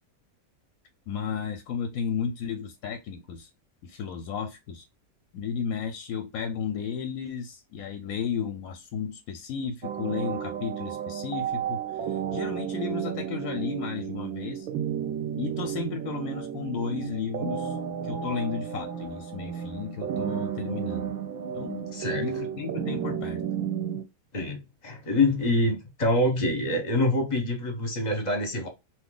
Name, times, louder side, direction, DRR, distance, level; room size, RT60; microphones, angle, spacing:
voice 1, 1.1-3.5 3.8-4.9 5.3-14.7 15.4-17.8 18.0-21.1 21.5-23.4, left 7 dB, 70° left, 0.9 m, -33 dB
sound 1, 9.8-24.0, right 9 dB, 70° right, 0.9 m, -32 dB
voice 2, 21.9-22.3 24.3-28.7, left 1 dB, 35° left, 0.7 m, -26 dB
2.8 x 2.5 x 3.6 m
omnidirectional pair, 1.8 m